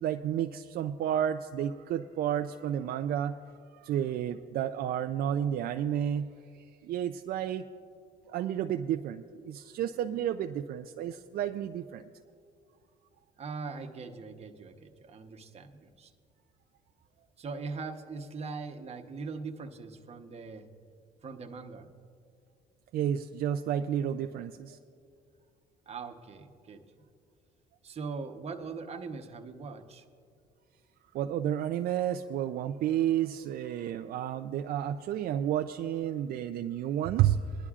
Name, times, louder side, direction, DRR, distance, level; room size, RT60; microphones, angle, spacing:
voice 1, 0.0-3.4 3.7-6.3 6.6-7.6 8.3-12.1 22.9-24.8 31.1-37.7, right 10 dB, 65° right, 7 dB, 0.4 m, -31 dB
voice 2, 13.4-16.1 17.4-20.7 21.2-21.9 25.9-26.8 27.8-30.0, right 4 dB, 40° right, 5 dB, 1.0 m, -41 dB
21.5 x 11.5 x 2.4 m, 2.3 s
cardioid pair, 110°, 17 cm